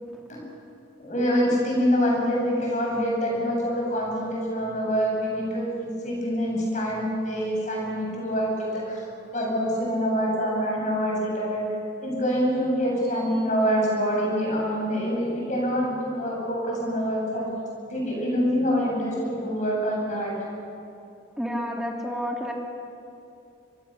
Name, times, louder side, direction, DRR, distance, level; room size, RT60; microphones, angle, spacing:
voice 1, 1.0-9.0 9.3-11.6 12.0-17.5 17.9-20.3, equal, 40° left, -2 dB, 7.9 m, -25 dB
voice 2, 21.4-22.5, equal, 5° right, -1 dB, 2.8 m, -30 dB
25.0 x 22.5 x 7.0 m, 2.8 s
head